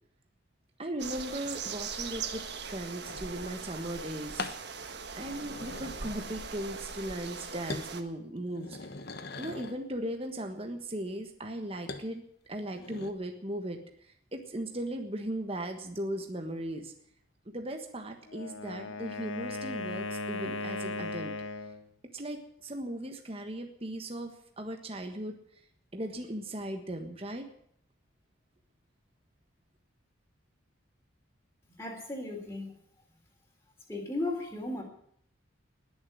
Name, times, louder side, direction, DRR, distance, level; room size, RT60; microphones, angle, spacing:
voice 1, 0.8-4.5 5.1-8.8 9.4-12.2 12.5-16.9 17.5-21.3 22.1-25.4 25.9-27.5, right 1 dB, 30° right, 4 dB, 1.4 m, -38 dB
sound 1, 1.0-8.0, right 5 dB, 55° right, 1.4 m, -40 dB
sound 2, 3.1-3.3 4.4-4.6 5.2-6.6 6.9-7.4 7.7-7.9 8.4-9.8 11.9-12.1 12.5-13.1, left 3 dB, 55° left, 1.2 m, -41 dB
Wind instrument woodwind instrument, 18.3-21.8, left 2 dB, 85° left, 1.9 m, -37 dB
voice 2, 31.8-32.7 33.9-34.8, left 2 dB, 15° left, -1 dB, 3.5 m, -35 dB
20.5 x 7.1 x 9.9 m, 0.66 s
head